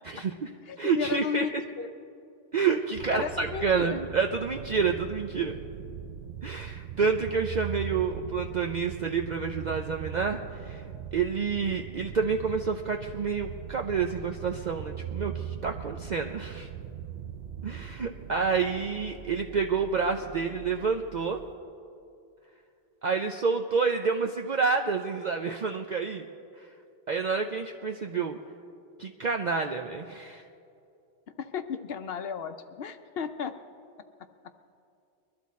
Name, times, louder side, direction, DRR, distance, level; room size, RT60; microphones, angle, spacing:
voice 1, 0.0-0.5 0.8-1.5 2.5-5.6 6.4-10.8 11.1-16.7 17.6-21.4 23.0-26.3 26.6-26.7 27.1-28.4 29.0-30.4, right 5 dB, 50° right, 3 dB, 0.6 m, -28 dB
voice 2, 0.7-1.5 1.8-1.9 3.1-4.0 31.4-33.5, left 6 dB, 65° left, 9 dB, 0.8 m, -34 dB
sound 1, 2.9-21.7, right 9 dB, 75° right, 0.9 m, -40 dB
22.0 x 12.5 x 4.2 m, 2.5 s
omnidirectional pair, 1.2 m